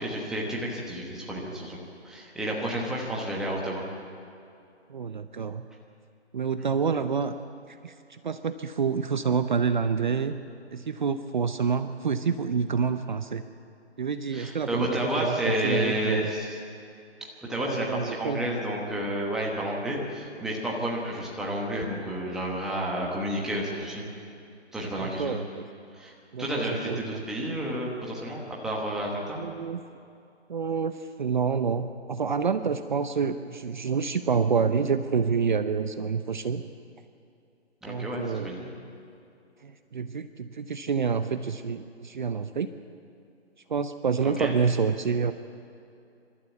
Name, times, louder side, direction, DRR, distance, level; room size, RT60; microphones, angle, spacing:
voice 1, 0.0-1.8 2.0-3.8 14.3-16.6 17.2-24.0 24.7-25.4 25.9-26.1 26.4-29.4 37.8-38.7 44.2-44.5, equal, ahead, -3 dB, 1.1 m, -31 dB
voice 2, 4.9-5.7 6.3-7.3 7.7-10.3 10.7-13.4 14.0-16.3 17.6-18.4 24.9-25.7 26.3-27.0 29.4-29.8 30.5-36.6 37.8-38.6 39.6-42.7 43.7-45.3, right 6 dB, 45° right, 10 dB, 0.7 m, -28 dB
26.5 x 13.0 x 8.1 m, 2.6 s
hypercardioid pair, 165°, 34 cm